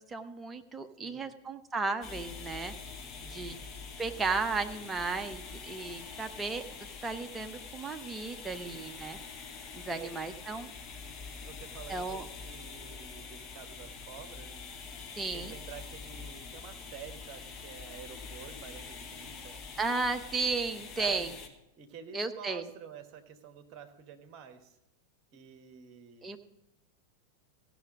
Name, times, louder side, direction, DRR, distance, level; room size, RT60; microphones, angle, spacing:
voice 1, 0.0-2.7 3.3-3.6 4.0-6.6 7.0-9.2 9.7-10.7 11.9-12.3 15.2-15.6 19.8-21.3 22.1-22.7 26.2-26.4, right 4 dB, 15° right, 7 dB, 0.7 m, -34 dB
voice 2, 1.0-1.3 3.2-3.7 8.6-8.9 9.9-10.1 11.4-14.6 15.3-19.6 21.0-21.4 21.8-24.8 25.3-26.4, right 8 dB, 40° right, 7 dB, 1.1 m, -49 dB
sound 1, 2.0-21.5, left 5 dB, 30° left, 1.2 m, -45 dB
15.5 x 6.1 x 5.2 m, 0.86 s
figure-of-eight pair, 90°, 0 cm